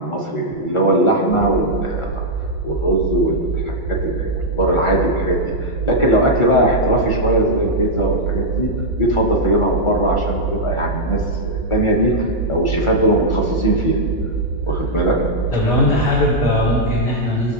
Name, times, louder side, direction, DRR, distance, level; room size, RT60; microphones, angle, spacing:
voice 1, 0.0-2.3 2.6-3.4 3.6-3.7 4.0-5.4 5.8-8.7 9.0-11.2 11.7-14.0 14.6-15.2, right 1 dB, 15° left, -2 dB, 1.3 m, -19 dB
sound 1, 1.3-17.0, right 6 dB, 55° right, 0.9 m, -25 dB
voice 2, 15.5-17.5, left 2 dB, 60° left, -6 dB, 2.4 m, -18 dB
20.0 x 6.8 x 3.3 m, 2.1 s
omnidirectional pair, 2.1 m